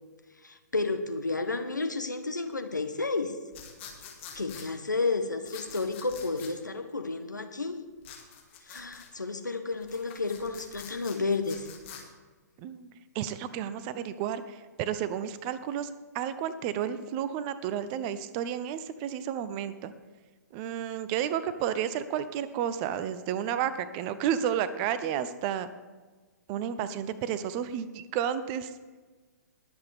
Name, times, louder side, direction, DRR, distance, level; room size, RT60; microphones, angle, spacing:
voice 1, 0.4-3.3 4.3-7.8 8.7-11.7, left 3 dB, 80° left, 7 dB, 1.3 m, -31 dB
sound 1, 3.5-4.7 5.4-6.5 8.0-9.1 9.7-12.0, left 7 dB, 40° left, 2.3 m, -46 dB
voice 2, 12.6-19.9 20.5-25.7 26.5-28.7, right 9 dB, 30° right, 13 dB, 0.7 m, -32 dB
21.0 x 8.1 x 3.6 m, 1.4 s
figure-of-eight pair, 120°, 10 cm